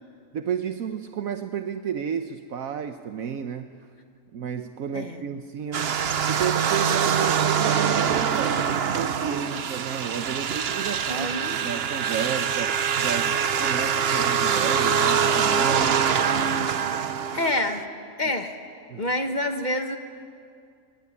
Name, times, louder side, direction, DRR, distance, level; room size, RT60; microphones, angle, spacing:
voice 1, 0.3-3.7 4.3-11.3 11.6-16.1 18.9-19.0, right 8 dB, 70° right, 8 dB, 1.3 m, -32 dB
sound 1, 5.7-17.8, right 7 dB, 50° right, 1.0 m, -24 dB
voice 2, 11.1-11.6 17.3-17.9 18.2-18.6 18.9-20.0, left 1 dB, 30° left, 6 dB, 1.7 m, -27 dB
26.0 x 23.5 x 9.7 m, 2.3 s
omnidirectional pair, 1.5 m